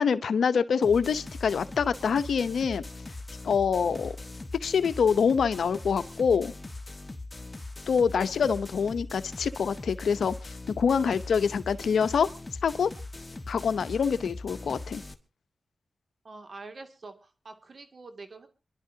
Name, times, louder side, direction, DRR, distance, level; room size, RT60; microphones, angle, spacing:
voice 1, 0.0-2.8 3.4-4.1 4.6-6.5 7.9-12.3 12.6-12.9 13.5-15.0, left 6 dB, 85° left, 0.8 m, -25 dB
sound 1, 0.8-15.1, left 2 dB, 25° left, 1.5 m, -41 dB
voice 2, 16.2-18.5, right 3 dB, 55° right, 2.4 m, -45 dB
27.0 x 11.5 x 2.8 m
cardioid pair, 55°, 0 cm